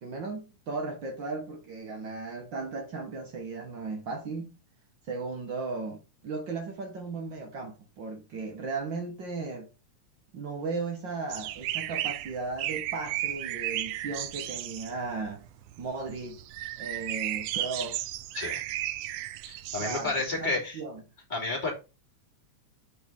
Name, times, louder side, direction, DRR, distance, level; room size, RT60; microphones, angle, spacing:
voice 1, 0.0-4.6 5.1-9.7 10.3-15.4 15.8-16.4 16.8-18.0 19.8-21.0, right 3 dB, 55° right, 1.4 m, -36 dB
sound 1, 11.3-20.5, right 14 dB, 85° right, 1.4 m, -34 dB
voice 2, 19.5-20.8 21.3-21.7, left 3 dB, 15° left, 2.4 m, -31 dB
7.1 x 4.3 x 3.6 m
omnidirectional pair, 3.3 m